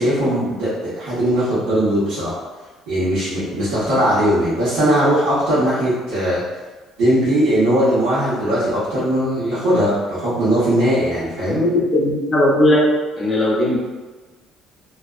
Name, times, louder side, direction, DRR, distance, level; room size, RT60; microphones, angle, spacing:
voice 1, 0.0-2.3 2.9-6.4 7.0-11.6, right 1 dB, 90° right, -14 dB, 1.2 m, -19 dB
voice 2, 11.5-12.8 13.2-13.8, left 1 dB, 25° left, -4 dB, 0.7 m, -17 dB
2.5 x 2.3 x 2.4 m, 1.2 s
cardioid pair, 120°, 0 cm